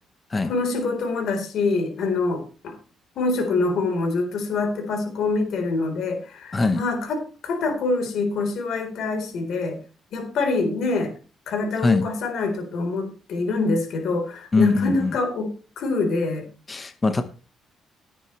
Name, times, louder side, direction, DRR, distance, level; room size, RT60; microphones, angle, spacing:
voice 1, 0.4-2.7 3.2-9.8 10.1-11.1 11.5-16.4, left 3 dB, 60° left, 4 dB, 4.0 m, -25 dB
voice 2, 14.5-15.1 16.7-17.2, left 3 dB, 20° left, 9 dB, 1.0 m, -21 dB
18.0 x 8.9 x 3.2 m, 0.34 s
cardioid pair, 175°, 0 cm